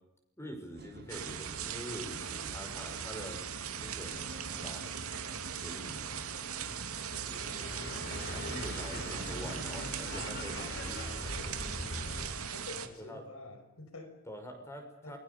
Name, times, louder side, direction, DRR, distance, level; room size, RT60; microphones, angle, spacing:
voice 1, 0.4-3.4 3.8-4.3 4.6-4.8 5.6-6.0 8.3-11.0 13.0-13.2 14.3-15.2, equal, 10° left, 4 dB, 5.8 m, -45 dB
sound 1, 0.8-10.7, right 1 dB, 50° right, 5.4 m, -49 dB
sound 2, 1.1-12.9, right 7 dB, 90° right, 2.6 m, -39 dB
voice 2, 7.1-7.4 12.5-14.2 15.0-15.2, left 2 dB, 80° left, 7 dB, 5.6 m, -48 dB
sound 3, 7.2-12.4, left 1 dB, 50° left, 6.3 m, -41 dB
28.5 x 22.5 x 6.9 m, 0.82 s
head